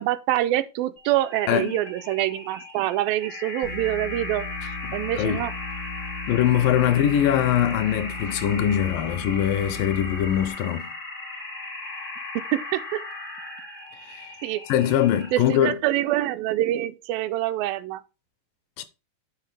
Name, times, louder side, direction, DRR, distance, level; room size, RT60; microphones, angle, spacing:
voice 1, 0.0-4.4 4.9-5.5 12.4-13.0 14.4-14.6 15.3-18.0, right 14 dB, 85° right, 2.2 m, -25 dB
sound 1, 1.0-15.5, left 3 dB, 60° left, 0.9 m, -37 dB
sound 2, 3.6-10.5, left 3 dB, 65° right, 0.8 m, -37 dB
voice 2, 6.3-10.9 14.1-14.2 14.7-15.8 18.8-18.9, left 10 dB, 80° left, 2.2 m, -22 dB
9.9 x 4.5 x 3.2 m
omnidirectional pair, 4.2 m